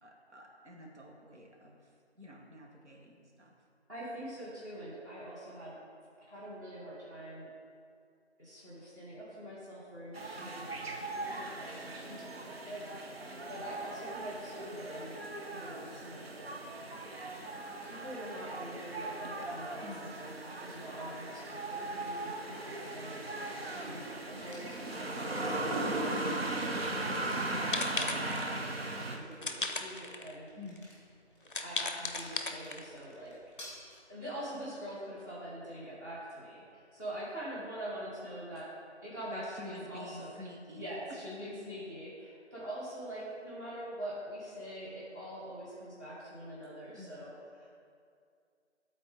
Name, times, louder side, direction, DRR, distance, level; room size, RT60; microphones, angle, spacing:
voice 1, 0.0-3.5 10.4-10.7 19.8-20.1 23.7-24.0 30.5-30.9 39.3-41.2 47.0-47.2, left 1 dB, 75° right, -2 dB, 1.6 m, -49 dB
voice 2, 3.9-5.8 6.3-7.5 8.4-10.7 11.0-13.2 13.5-15.2 15.5-16.5 17.8-26.2 27.2-30.5 31.6-33.3 34.1-38.7 39.0-40.3 40.7-47.7, right 1 dB, 15° right, -11 dB, 1.4 m, -44 dB
sound 1, 10.1-29.2, right 2 dB, 60° right, 0.8 m, -38 dB
sound 2, 22.2-40.0, left 1 dB, 20° left, 1.9 m, -60 dB
sound 3, 27.1-27.3 27.7-28.6 29.4-30.3 30.8-30.9 31.5-33.0, left 3 dB, 50° left, 0.6 m, -36 dB
12.0 x 4.2 x 3.6 m, 2.3 s
figure-of-eight pair, 165°, 35 cm